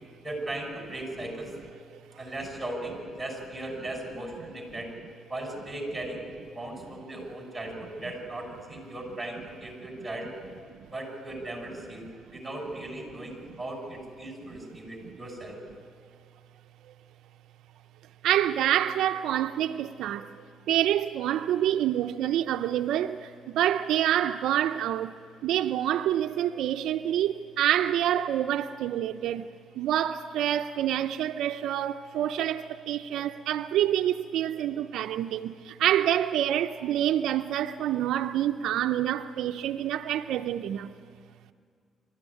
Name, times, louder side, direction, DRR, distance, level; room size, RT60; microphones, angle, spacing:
voice 1, 0.2-1.5 2.2-4.9 5.3-10.3 10.9-12.0 12.3-15.6, right 1 dB, 15° right, 6.2 m, -37 dB
voice 2, 18.2-20.2 20.7-23.2 23.5-25.1 25.4-29.5 29.8-35.5 35.8-40.9, right 11 dB, 80° right, 0.5 m, -27 dB
26.0 x 13.5 x 9.8 m
cardioid pair, 90°, 0 cm